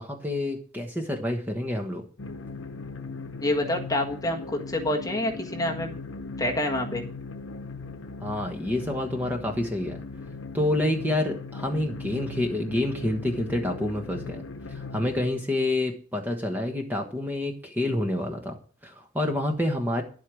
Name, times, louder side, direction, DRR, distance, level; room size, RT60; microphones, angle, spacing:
voice 1, 0.0-2.0 8.2-10.0 10.5-14.4 14.7-20.0, left 1 dB, 10° right, 3 dB, 1.2 m, -28 dB
sound 1, 2.2-15.3, left 3 dB, 75° left, 1.0 m, -39 dB
voice 2, 3.4-6.0 6.4-7.0, left 1 dB, 15° left, 1 dB, 1.5 m, -27 dB
11.0 x 8.3 x 6.2 m, 0.42 s
head